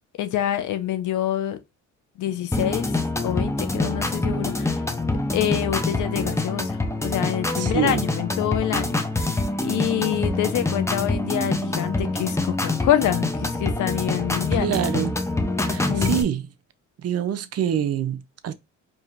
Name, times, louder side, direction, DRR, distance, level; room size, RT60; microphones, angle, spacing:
voice 1, 0.2-1.6 2.2-4.8 5.3-14.7 15.7-16.3, left 11 dB, 80° left, 0.8 m, -26 dB
sound 1, 2.5-16.2, left 2 dB, 10° left, 0.7 m, -25 dB
voice 2, 7.6-8.0 14.6-15.2 15.6-16.4 17.0-18.5, right 9 dB, 55° right, 0.6 m, -26 dB
4.8 x 2.8 x 2.5 m
cardioid pair, 90°, 30 cm